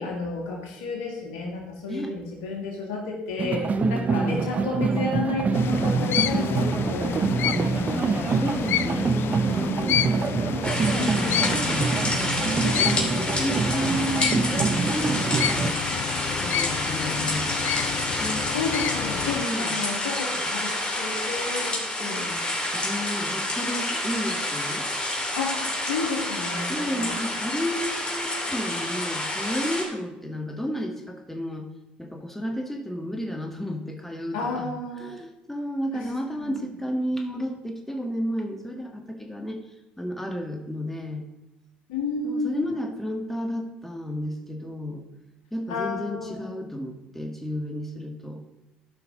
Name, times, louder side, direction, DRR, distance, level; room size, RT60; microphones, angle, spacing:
voice 1, 0.0-8.5 10.8-11.6 12.6-13.5 18.5-22.4 25.4-25.6 25.9-27.2 34.3-35.1 35.9-36.1 36.4-36.5 41.9-42.7 45.7-46.5, left 3 dB, 75° left, 1 dB, 1.9 m, -32 dB
sound 1, 3.4-15.7, right 5 dB, 35° right, 0.4 m, -26 dB
voice 2, 3.7-4.4 6.3-6.8 8.0-10.0 10.9-12.2 12.7-15.8 16.4-17.6 18.2-18.5 19.4-19.8 22.0-22.2 22.7-24.9 26.7-31.7 32.0-39.6 40.0-41.3 42.2-45.0 45.5-48.4, equal, 5° left, 3 dB, 1.6 m, -32 dB
sound 2, 5.5-19.5, left 11 dB, 55° left, 0.4 m, -30 dB
sound 3, 10.6-29.8, left 1 dB, 20° left, 2.8 m, -29 dB
13.5 x 5.7 x 3.8 m, 0.92 s
hypercardioid pair, 60°, 5 cm